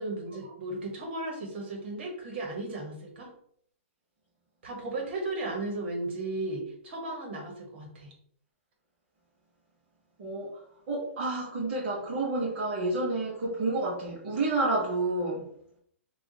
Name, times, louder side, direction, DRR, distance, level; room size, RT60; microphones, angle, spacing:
voice 1, 0.0-3.3 4.6-8.1, right 2 dB, 50° right, 1 dB, 1.2 m, -35 dB
voice 2, 10.2-10.6 10.9-15.5, right 2 dB, 30° right, -7 dB, 0.9 m, -29 dB
2.4 x 2.4 x 3.9 m, 0.66 s
hypercardioid pair, 170°, 7 cm